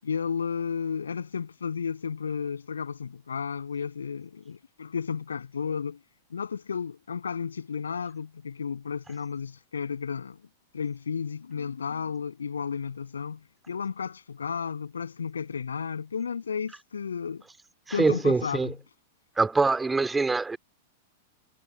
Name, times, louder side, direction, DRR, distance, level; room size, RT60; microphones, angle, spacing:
voice 1, 0.0-6.0 6.3-10.4 10.7-13.4 13.7-17.4 17.9-18.7, left 6 dB, 70° left, 7.9 m, -33 dB
voice 2, 17.9-18.7 19.4-20.6, right 3 dB, 10° right, 3.0 m, -24 dB
figure-of-eight pair, 95°, 0 cm